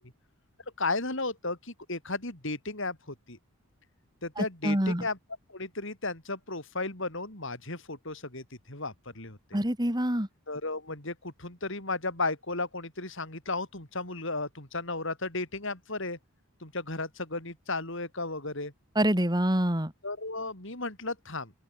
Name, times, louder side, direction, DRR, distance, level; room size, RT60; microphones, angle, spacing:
voice 1, 0.8-3.4 4.2-5.2 5.5-9.6 10.5-16.2 16.6-18.7 20.0-21.5, left 3 dB, 60° left, 5.0 m, -34 dB
voice 2, 4.4-5.0 9.5-10.3 18.9-19.9, right 1 dB, 20° right, 3.3 m, -26 dB
open air
head